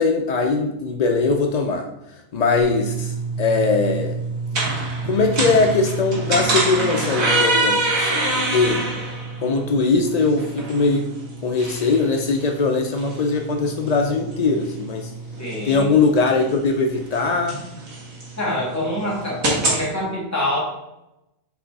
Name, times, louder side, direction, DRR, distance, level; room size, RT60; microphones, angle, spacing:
voice 1, 0.0-1.9 2.3-4.2 5.0-8.8 9.4-11.1 11.4-15.1 15.6-17.6, left 4 dB, 70° left, 3 dB, 0.3 m, -21 dB
sound 1, 2.6-19.8, right 2 dB, 85° right, 1.9 m, -26 dB
voice 2, 15.4-15.9 18.4-20.6, left 1 dB, 10° left, -6 dB, 1.9 m, -25 dB
7.0 x 3.4 x 4.0 m, 0.90 s
omnidirectional pair, 1.4 m